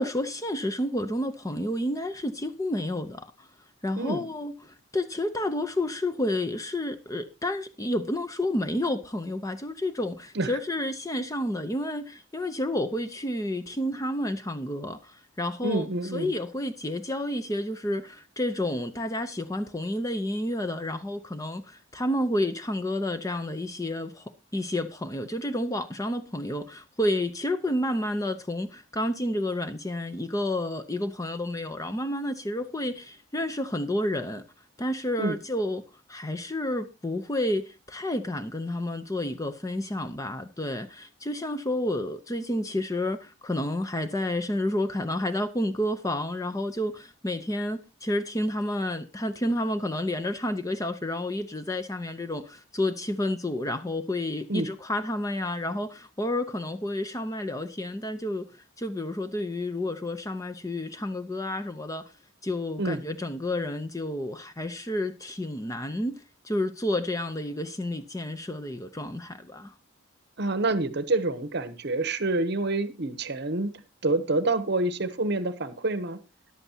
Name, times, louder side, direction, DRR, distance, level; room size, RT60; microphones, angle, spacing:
voice 1, 0.0-3.5 3.8-4.5 4.9-34.4 34.8-35.8 36.1-58.5 58.8-62.1 62.4-69.7, left 1 dB, 15° left, 0.6 m, -30 dB
voice 2, 4.0-4.3 10.3-10.6 15.6-16.3 35.2-35.4 54.5-54.7 62.8-63.0 70.4-73.7 74.0-76.2, right 2 dB, 50° right, 0.9 m, -27 dB
13.5 x 11.0 x 2.8 m
head